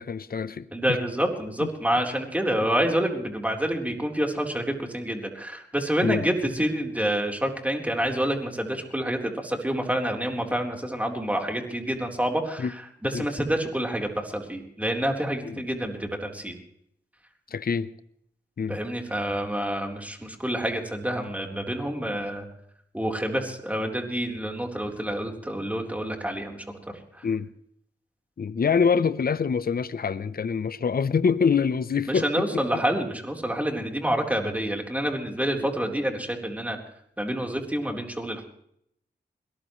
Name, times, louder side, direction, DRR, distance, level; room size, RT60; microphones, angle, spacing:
voice 1, 0.0-1.0 1.6-1.7 6.0-6.2 12.6-12.7 13.1-13.3 15.4-15.6 17.5-17.9 18.6-18.8 22.2-22.3 27.2-27.5 28.4-32.8 33.7-33.8, left 6 dB, 55° left, 0.8 m, -25 dB
voice 2, 0.7-12.7 13.0-16.5 18.7-22.5 22.9-27.2 32.1-36.8 37.2-38.5, right 1 dB, 10° right, 3.9 m, -28 dB
21.5 x 19.0 x 3.2 m
cardioid pair, 55°, 18 cm